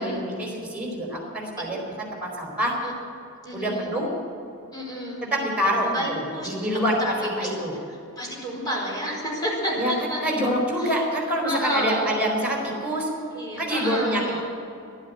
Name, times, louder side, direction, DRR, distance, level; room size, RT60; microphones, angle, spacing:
voice 1, 0.0-1.8 2.4-2.7 3.5-4.1 5.3-6.9 7.2-7.7 9.8-13.1 13.6-14.4, equal, 5° right, -1 dB, 4.5 m, -26 dB
voice 2, 3.4-3.9 4.7-5.2 5.8-7.5 8.2-10.2 10.8-11.0 11.4-12.3 13.3-14.4, equal, 20° left, -3 dB, 4.6 m, -30 dB
12.0 x 12.0 x 8.7 m, 2.7 s
head